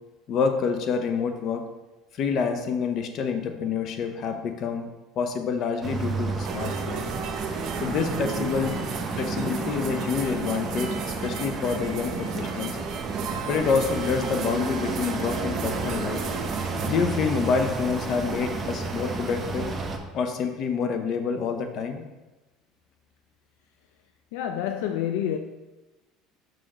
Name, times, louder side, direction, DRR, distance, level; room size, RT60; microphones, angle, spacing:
voice 1, 0.3-1.6 2.2-4.9 5.2-7.0 7.8-8.8 9.1-12.8 13.5-16.2 16.9-19.7 20.1-22.0, left 5 dB, 50° left, 0.8 m, -27 dB
sound 1, 5.8-20.0, right 4 dB, 25° right, 0.8 m, -32 dB
sound 2, 6.4-16.9, right 5 dB, 55° right, 0.9 m, -34 dB
voice 2, 24.3-25.4, left 10 dB, 80° left, 0.3 m, -28 dB
6.5 x 6.1 x 3.0 m
supercardioid pair, 110°, 0 cm